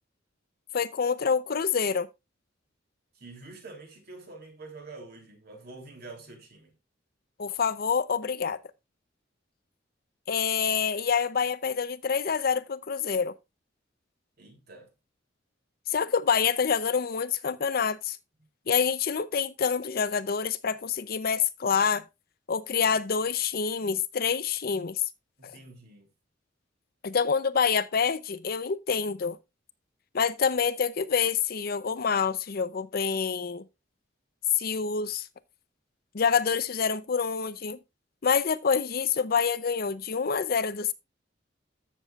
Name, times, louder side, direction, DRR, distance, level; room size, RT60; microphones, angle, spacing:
voice 1, 0.7-2.1 7.4-8.6 10.3-13.3 15.9-18.2 18.7-22.0 22.5-25.0 27.0-29.4 30.1-33.6 34.6-35.3 36.1-37.8 38.2-40.9, left 6 dB, 50° left, 0.6 m, -27 dB
voice 2, 3.1-6.7 14.4-14.9 25.4-26.1, right 3 dB, 55° right, 3.0 m, -46 dB
14.0 x 6.8 x 2.4 m
head